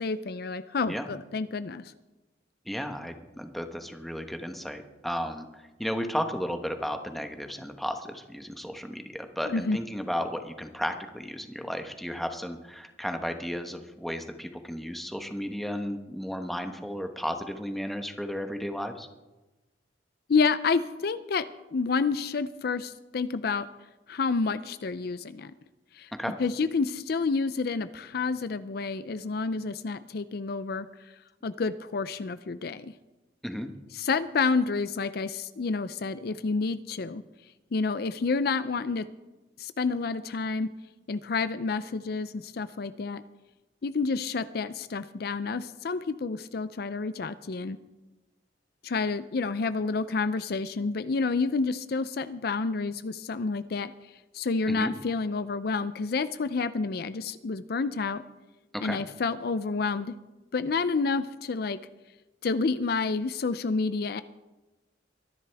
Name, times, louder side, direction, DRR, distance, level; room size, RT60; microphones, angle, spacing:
voice 1, 0.0-1.9 9.5-9.8 20.3-23.7 24.1-25.5 25.9-26.1 26.4-30.9 31.4-32.9 33.9-37.2 37.7-39.1 39.6-40.7 41.1-43.2 43.8-47.8 48.8-53.9 54.3-58.2 58.8-60.1 60.5-61.8 62.4-64.2, left 4 dB, 60° left, 13 dB, 0.5 m, -29 dB
voice 2, 2.7-19.1 26.2-26.4 33.4-33.7 54.7-54.9 58.7-59.0, equal, ahead, 6 dB, 1.1 m, -34 dB
23.5 x 11.0 x 3.5 m, 1.1 s
head